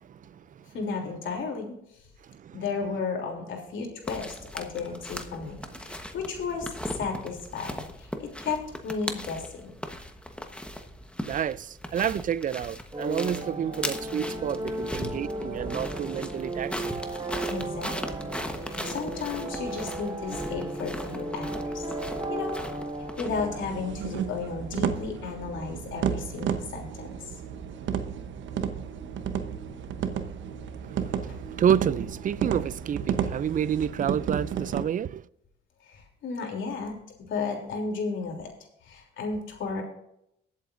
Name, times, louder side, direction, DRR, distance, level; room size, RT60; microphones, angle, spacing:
voice 1, 0.0-0.7 2.2-2.6 11.3-16.9 30.8-35.3, right 9 dB, 45° right, 0.5 m, -29 dB
voice 2, 0.7-1.7 2.5-6.7 7.0-9.7 17.4-18.0 18.6-21.8 22.3-22.5 23.2-27.1 35.9-36.9 37.3-38.5 38.9-39.8, left 4 dB, 75° left, 3.2 m, -33 dB
sound 1, 4.0-23.3, left 1 dB, 5° left, 1.2 m, -38 dB
sound 2, 12.9-25.7, right 2 dB, 20° right, 1.7 m, -36 dB
sound 3, 23.3-34.8, right 8 dB, 70° right, 1.0 m, -32 dB
21.0 x 8.2 x 2.6 m
cardioid pair, 90°, 20 cm